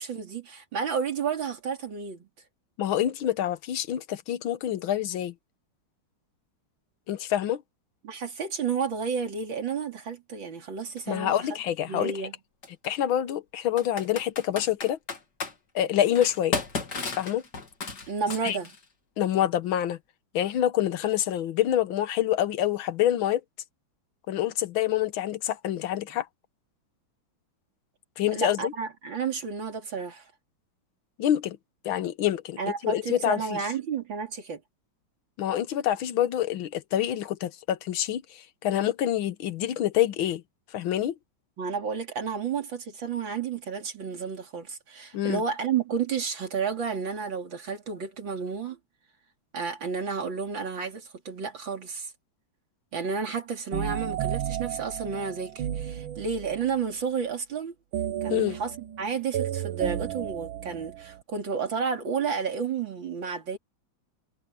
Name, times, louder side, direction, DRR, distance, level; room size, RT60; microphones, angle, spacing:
voice 1, 0.0-2.3 8.0-11.4 11.9-12.3 18.1-18.7 28.3-30.3 32.6-34.6 41.6-48.8 49.5-52.1 52.9-57.7 58.2-63.6, right 6 dB, 70° right, 3.7 m, -31 dB
voice 2, 2.8-5.3 7.1-7.6 11.1-12.2 12.9-15.0 15.7-16.6 17.2-17.4 18.4-18.6 19.2-20.0 20.3-23.4 24.3-26.3 28.2-28.7 31.2-31.6 31.8-33.6 35.4-40.4 40.7-41.1 45.1-45.4 58.3-58.6, left 11 dB, 90° left, 1.8 m, -26 dB
Computer keyboard, 11.0-11.1 12.6-12.9 13.8-15.5 16.2-18.8, left 4 dB, 55° left, 3.2 m, -34 dB
sound 1, 53.7-56.7 57.9-61.2, right 11 dB, 90° right, 1.7 m, -33 dB
omnidirectional pair, 2.2 m